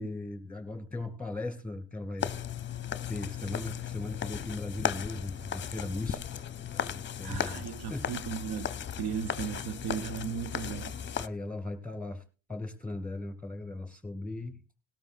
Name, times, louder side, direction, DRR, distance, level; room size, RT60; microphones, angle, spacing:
voice 1, 0.0-2.4 3.1-7.6 7.9-8.1 11.2-12.2 12.5-14.6, left 2 dB, 5° left, 2.1 m, -38 dB
sound 1, 2.2-11.3, left 9 dB, 30° left, 0.7 m, -36 dB
voice 2, 7.2-10.9, right 8 dB, 75° right, 0.8 m, -36 dB
18.5 x 13.0 x 2.5 m
cardioid pair, 115°, 39 cm